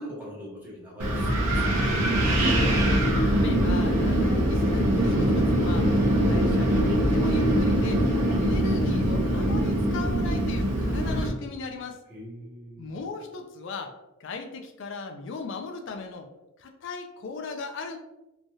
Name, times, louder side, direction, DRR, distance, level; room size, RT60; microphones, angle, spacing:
voice 1, 0.0-1.7 12.1-12.9, equal, 10° right, -7 dB, 0.9 m, -41 dB
Wind, 1.0-11.3, right 1 dB, 90° right, 0.8 m, -23 dB
voice 2, 2.6-2.9 3.2-5.9 6.2-8.0 8.4-12.0 12.8-13.9 14.2-16.3 16.6-18.0, left 4 dB, 55° left, 5 dB, 0.4 m, -37 dB
3.0 x 2.7 x 2.3 m, 1.0 s
head